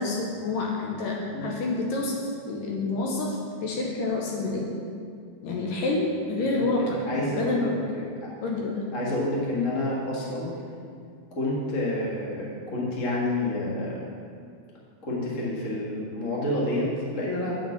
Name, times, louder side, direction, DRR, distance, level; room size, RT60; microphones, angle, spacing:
voice 1, 0.0-4.7 5.4-7.0 7.3-7.8 8.4-8.8, left 2 dB, 70° left, -1 dB, 2.3 m, -28 dB
voice 2, 6.4-8.1 8.9-10.5 11.3-14.0 15.0-17.5, left 1 dB, 45° left, -5 dB, 1.0 m, -29 dB
9.3 x 4.6 x 7.2 m, 2.3 s
omnidirectional pair, 4.4 m